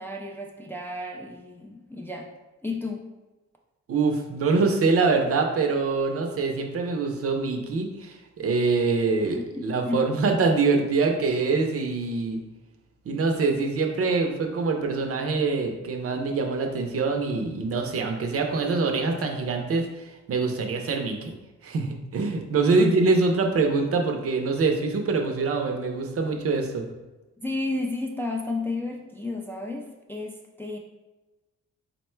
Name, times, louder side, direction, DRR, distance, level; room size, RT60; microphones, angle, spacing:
voice 1, 0.0-2.3 2.6-3.1 9.5-10.1 22.8-23.0 27.4-30.8, left 2 dB, 10° left, -1 dB, 0.3 m, -32 dB
voice 2, 3.9-12.4 13.1-21.3 21.6-26.9, right 4 dB, 50° right, 3 dB, 0.6 m, -24 dB
4.1 x 2.1 x 4.3 m, 1.1 s
cardioid pair, 120°, 29 cm